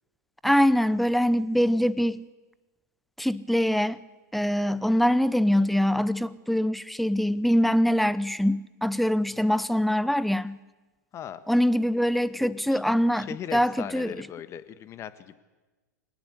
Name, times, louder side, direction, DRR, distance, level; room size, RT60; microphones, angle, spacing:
voice 1, 0.4-2.2 3.2-4.0 4.3-10.6 11.5-14.1, equal, ahead, 17 dB, 0.8 m, -23 dB
voice 2, 11.1-11.4 12.4-12.8 13.1-15.3, left 10 dB, 30° left, 12 dB, 1.6 m, -39 dB
24.5 x 18.5 x 8.4 m, 1.2 s
figure-of-eight pair, 100°, 10 cm